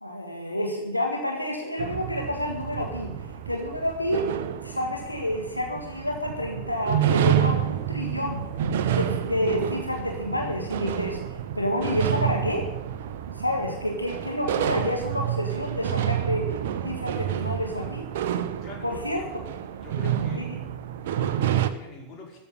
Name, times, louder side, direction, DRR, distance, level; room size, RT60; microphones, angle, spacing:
voice 1, 0.0-3.2 3.5-4.3 4.6-8.4 8.9-11.2 11.5-12.7 13.3-16.6 16.8-18.1 18.8-19.2 20.4-20.5, left 1 dB, 85° left, 1 dB, 1.7 m, -29 dB
sound 1, 1.8-21.7, right 10 dB, 55° right, 0.9 m, -29 dB
voice 2, 18.6-19.3 19.8-20.5 21.0-22.4, left 4 dB, 35° left, -2 dB, 5.1 m, -43 dB
13.5 x 6.6 x 9.6 m, 0.97 s
figure-of-eight pair, 90°, 0 cm